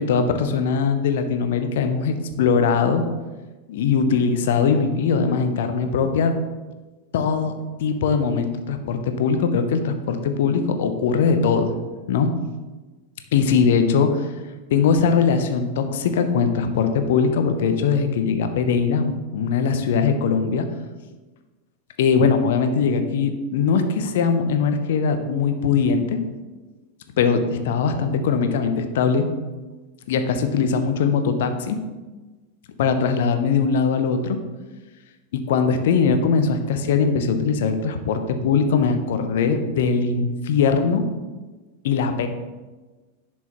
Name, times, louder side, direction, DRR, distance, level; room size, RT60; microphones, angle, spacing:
voice 1, 0.0-3.0 3.7-6.3 7.1-7.5 7.8-11.7 12.1-12.3 13.3-14.3 14.7-20.7 22.0-26.2 27.2-29.3 30.1-31.8 32.8-34.4 35.3-41.1 41.8-42.3, left 5 dB, 55° left, 8 dB, 0.8 m, -21 dB
10.5 x 6.3 x 3.1 m, 1.2 s
figure-of-eight pair, 90°, 0 cm